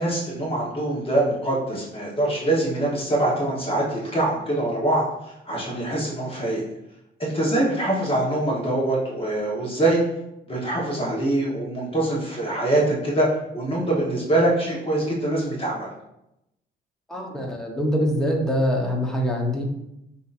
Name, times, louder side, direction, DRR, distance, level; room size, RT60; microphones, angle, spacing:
voice 1, 0.0-5.0 5.5-6.6 7.2-10.0 10.5-13.3 13.5-15.9, right 1 dB, 25° left, -4 dB, 1.3 m, -24 dB
voice 2, 17.1-19.6, equal, 5° left, -1 dB, 1.0 m, -24 dB
6.1 x 2.9 x 2.6 m, 0.85 s
cardioid pair, 90°, 20 cm